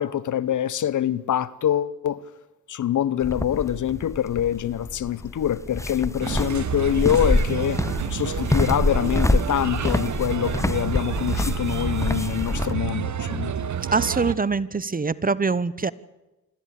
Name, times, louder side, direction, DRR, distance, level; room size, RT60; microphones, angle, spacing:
voice 1, 0.0-2.2 2.7-7.8 8.1-13.5, left 10 dB, 60° left, 1.0 m, -25 dB
sound 1, 3.2-12.7, left 2 dB, 10° left, 1.0 m, -26 dB
Bird, 6.2-14.3, right 8 dB, 55° right, 1.4 m, -29 dB
voice 2, 13.9-15.9, right 4 dB, 25° right, 0.9 m, -23 dB
26.0 x 13.5 x 8.5 m
supercardioid pair, 50°, 35 cm